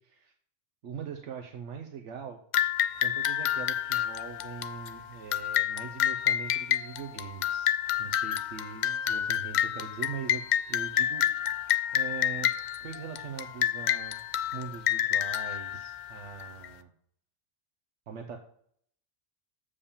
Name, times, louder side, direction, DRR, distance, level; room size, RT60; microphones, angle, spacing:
voice 1, 0.0-0.3 0.8-2.4 3.0-7.7 8.0-10.4 10.7-11.6 11.9-12.5 12.8-14.2 14.5-16.9 18.1-18.4, right 7 dB, 75° right, 4 dB, 1.1 m, -41 dB
sound 1, 2.5-16.7, left 10 dB, 60° left, 0.5 m, -29 dB
7.0 x 5.1 x 7.1 m, 0.63 s
omnidirectional pair, 1.2 m